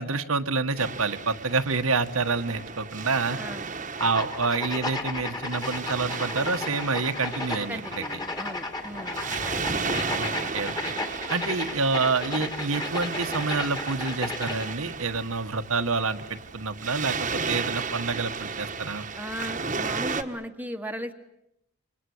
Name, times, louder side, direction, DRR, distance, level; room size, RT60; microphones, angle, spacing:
voice 1, 0.0-3.4 4.0-8.0 10.2-10.7 11.3-19.1, right 4 dB, 75° right, 7 dB, 1.5 m, -28 dB
Waves surf, 0.8-20.2, right 4 dB, 35° right, 1.4 m, -34 dB
sound 1, 4.0-14.7, left 2 dB, 20° left, 2.3 m, -34 dB
voice 2, 7.7-9.8 19.1-21.1, equal, 10° right, 5 dB, 1.4 m, -37 dB
29.0 x 25.5 x 8.1 m, 0.84 s
head